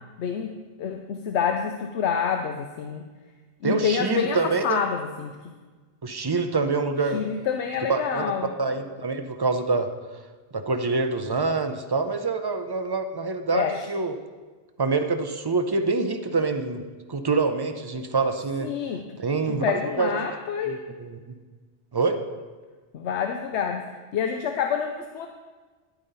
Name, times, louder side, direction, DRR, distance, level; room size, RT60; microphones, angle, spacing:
voice 1, 0.2-0.5 0.8-3.0 3.6-5.4 7.1-8.5 13.5-13.9 18.6-19.1 19.5-20.8 22.9-23.9 24.1-25.3, left 7 dB, 85° left, 5 dB, 0.9 m, -27 dB
voice 2, 3.6-4.8 6.0-7.2 7.9-8.3 8.6-9.9 10.5-14.1 14.8-16.8 17.1-18.7 19.2-20.1 20.6-21.4 21.9-22.2, right 3 dB, 35° right, 7 dB, 0.4 m, -26 dB
10.5 x 8.9 x 4.1 m, 1.4 s
omnidirectional pair, 1.1 m